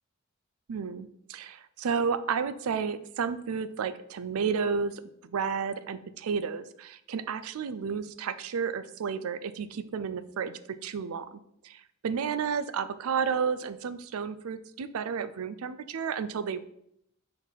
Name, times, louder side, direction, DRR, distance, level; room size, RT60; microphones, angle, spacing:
voice 1, 0.7-5.0 5.3-16.6, right 6 dB, 85° right, 14 dB, 0.4 m, -32 dB
4.5 x 3.9 x 5.4 m, 0.74 s
head